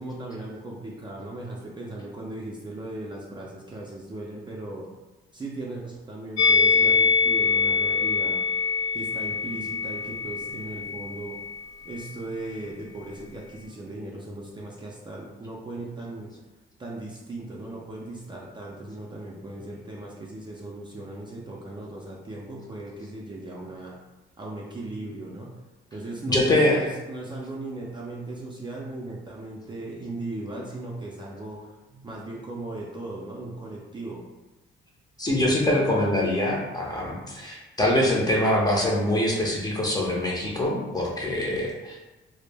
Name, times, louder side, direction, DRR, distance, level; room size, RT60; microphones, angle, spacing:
voice 1, 0.0-4.9 5.3-8.4 8.9-11.4 11.8-16.3 16.8-24.0 24.4-25.5 25.9-34.2, right 2 dB, 25° right, -3 dB, 0.4 m, -37 dB
Musical instrument, 6.4-11.6 11.9-12.1, left 5 dB, 80° left, 0.5 m, -24 dB
voice 2, 26.3-26.9 35.2-42.0, left 1 dB, 20° left, -2 dB, 0.6 m, -24 dB
2.1 x 2.0 x 3.3 m, 1.1 s
cardioid pair, 90°, 20 cm